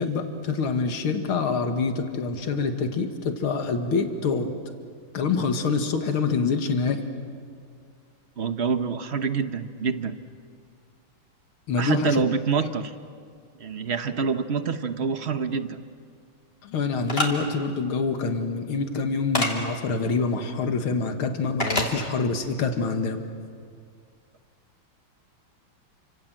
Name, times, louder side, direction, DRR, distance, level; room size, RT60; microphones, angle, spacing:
voice 1, 0.0-4.5 5.1-7.0 11.7-12.2 16.6-23.2, left 4 dB, 80° left, 6 dB, 2.5 m, -26 dB
voice 2, 8.4-10.1 11.8-12.9 13.6-15.8, right 5 dB, 45° right, 10 dB, 0.9 m, -26 dB
sound 1, 17.1-17.3 19.3-19.5 21.6-21.9, left 2 dB, 25° left, 3.3 m, -24 dB
30.0 x 26.0 x 7.7 m, 2.2 s
omnidirectional pair, 2.3 m